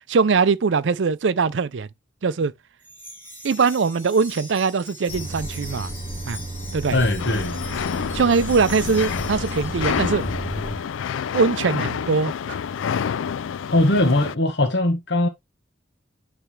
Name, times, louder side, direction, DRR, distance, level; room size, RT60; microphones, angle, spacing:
voice 1, 0.1-1.9 2.2-2.5 3.4-5.9 6.3-6.4 6.7-7.0 8.1-10.2 11.3-12.6, right 5 dB, 70° right, 0.5 m, -21 dB
Wind chime, 2.8-10.3, left 1 dB, 10° left, 2.3 m, -41 dB
sound 1, 5.1-10.8, right 1 dB, 40° left, 2.1 m, -32 dB
voice 2, 6.9-7.5 13.7-15.3, left 1 dB, 65° left, 1.3 m, -20 dB
sound 2, 7.2-14.3, left 7 dB, 85° left, 0.3 m, -28 dB
9.1 x 3.3 x 3.3 m
head